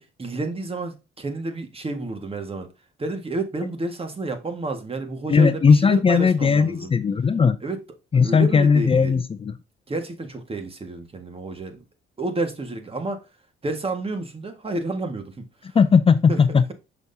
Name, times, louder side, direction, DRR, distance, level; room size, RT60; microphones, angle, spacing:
voice 1, 0.0-2.7 3.0-6.9 7.6-7.8 8.2-9.2 9.9-11.8 12.2-13.2 13.6-15.8 16.3-16.7, right 2 dB, 30° right, 1.7 m, -30 dB
voice 2, 5.3-7.6 8.1-9.5 15.7-16.7, left 5 dB, 30° left, 0.5 m, -18 dB
6.4 x 5.9 x 2.7 m
cardioid pair, 90°, 20 cm